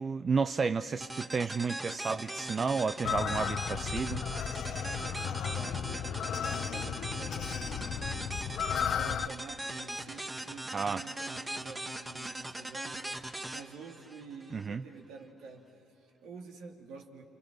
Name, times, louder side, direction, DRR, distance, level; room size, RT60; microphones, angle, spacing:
voice 1, 0.0-4.2 10.7-11.0 14.5-14.8, right 5 dB, 40° right, 0.5 m, -31 dB
sound 1, 1.0-14.7, right 1 dB, 15° right, 1.6 m, -40 dB
sound 2, 3.0-9.3, left 8 dB, 60° left, 0.7 m, -34 dB
voice 2, 4.0-6.1 6.4-8.4 8.8-17.2, right 4 dB, 70° right, 2.7 m, -49 dB
30.0 x 29.0 x 6.2 m
hypercardioid pair, 55°, 0 cm